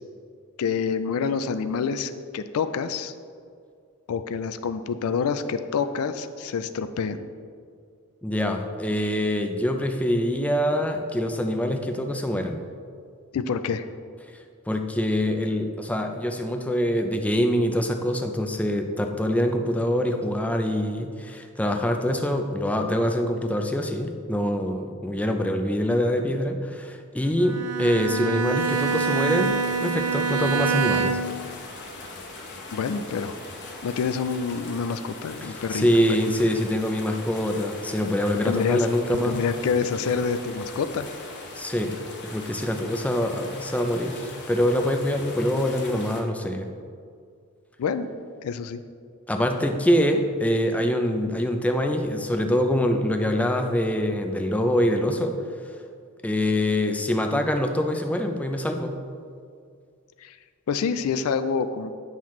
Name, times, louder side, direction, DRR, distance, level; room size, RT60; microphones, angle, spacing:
voice 1, 0.6-3.1 4.1-7.3 13.3-13.9 32.7-33.3 33.8-36.2 38.4-38.9 39.2-41.1 47.8-48.1 48.4-48.8 60.2-60.4 60.7-61.9, left 5 dB, 75° left, 11 dB, 0.4 m, -27 dB
voice 2, 8.2-12.6 14.7-31.2 35.4-39.4 41.6-41.9 42.3-46.7 49.3-55.3 56.2-59.0, equal, 5° left, 4 dB, 0.4 m, -24 dB
Bowed string instrument, 27.4-31.5, right 6 dB, 90° right, 0.5 m, -26 dB
sound 1, 28.6-46.2, left 3 dB, 50° left, 1.0 m, -40 dB
8.7 x 5.8 x 3.1 m, 2.2 s
head